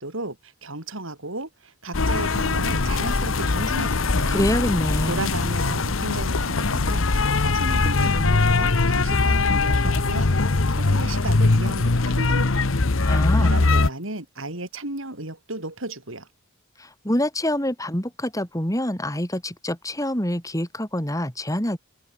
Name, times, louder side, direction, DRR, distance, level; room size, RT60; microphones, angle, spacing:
voice 1, 0.0-4.4 5.1-7.1 7.4-12.8 13.4-16.3, right 2 dB, 75° right, 5.4 m, -34 dB
sound 1, 1.9-13.9, left 3 dB, 80° left, 1.1 m, -21 dB
voice 2, 4.3-5.2 13.0-13.6 16.8-21.8, left 1 dB, 15° left, 6.6 m, -26 dB
head